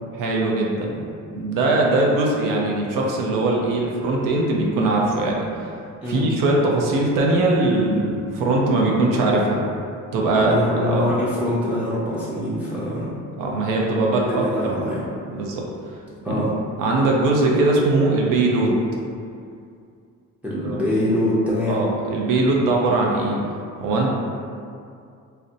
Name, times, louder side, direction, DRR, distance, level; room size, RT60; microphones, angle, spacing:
voice 1, 0.2-1.1 1.3-5.4 6.1-9.6 10.1-11.1 13.4-14.4 15.3-15.6 16.3-16.4 16.8-18.8 20.6-20.8 21.7-23.4 23.8-24.1, right 2 dB, 70° right, -2 dB, 0.5 m, -20 dB
voice 2, 10.2-13.2 14.3-15.0 16.2-16.5 20.4-21.8, left 1 dB, 5° right, -9 dB, 0.5 m, -24 dB
2.6 x 2.1 x 2.5 m, 2.4 s
supercardioid pair, 80°, 34 cm